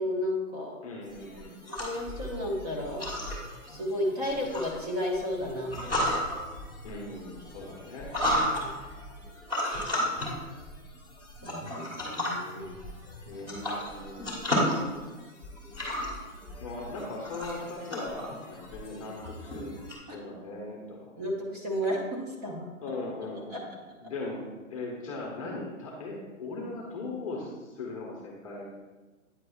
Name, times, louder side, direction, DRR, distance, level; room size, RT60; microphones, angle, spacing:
voice 1, 0.0-0.7 1.8-3.1 3.7-6.3 8.3-8.8 11.4-12.8 20.1-20.2 21.2-22.0 22.3-22.6 23.5-23.6, left 1 dB, 25° right, -1 dB, 1.1 m, -33 dB
voice 2, 0.8-1.6 6.8-8.1 13.3-14.2 16.6-19.7 20.1-21.1 22.8-23.7 24.0-28.6, left 2 dB, 25° left, -2 dB, 0.8 m, -39 dB
sound 1, 1.0-19.9, equal, 5° right, 1.4 m, -34 dB
9.3 x 4.7 x 2.3 m, 1.2 s
hypercardioid pair, 155°, 42 cm